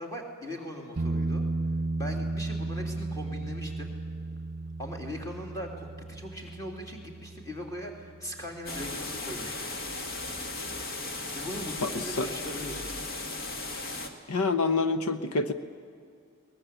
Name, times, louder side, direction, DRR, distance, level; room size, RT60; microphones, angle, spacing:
voice 1, 0.0-1.4 2.0-3.9 4.8-9.7 11.3-13.0, left 1 dB, 15° left, 1 dB, 3.0 m, -40 dB
sound 1, 1.0-8.6 11.6-11.7, right 2 dB, 45° right, 0.7 m, -34 dB
sound 2, 8.7-14.1, left 2 dB, 45° left, 1.9 m, -36 dB
voice 2, 11.8-12.3 14.3-15.5, left 3 dB, 85° left, 10 dB, 1.0 m, -27 dB
22.5 x 19.5 x 8.2 m, 2.3 s
head